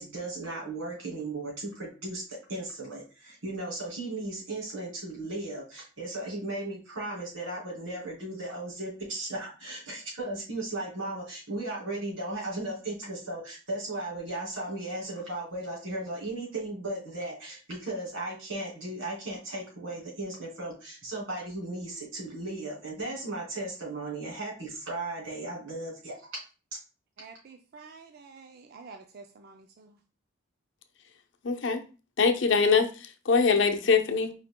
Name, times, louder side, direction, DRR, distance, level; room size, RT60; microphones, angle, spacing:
voice 1, 0.0-26.4, right 2 dB, 90° right, -3 dB, 2.5 m, -36 dB
voice 2, 27.2-30.0, right 4 dB, 50° right, 5 dB, 0.4 m, -49 dB
voice 3, 31.4-31.8 32.2-34.3, left 5 dB, 65° left, 5 dB, 0.6 m, -23 dB
4.8 x 2.8 x 3.6 m, 0.34 s
head